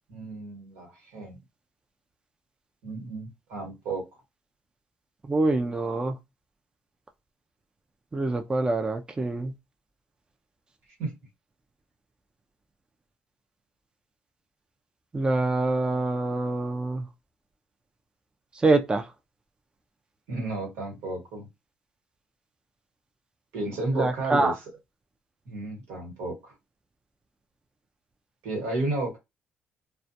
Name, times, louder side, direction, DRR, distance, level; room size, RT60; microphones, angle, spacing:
voice 1, 0.1-1.4 2.8-4.1 11.0-11.1 20.3-21.5 23.5-24.5 25.4-26.5 28.4-29.2, right 2 dB, 85° right, 1.2 m, -32 dB
voice 2, 5.3-6.2 8.1-9.5 15.1-17.1 18.5-19.1 23.9-24.6, right 2 dB, 20° right, 0.4 m, -25 dB
2.2 x 2.1 x 2.7 m
cardioid pair, 85°, 4 cm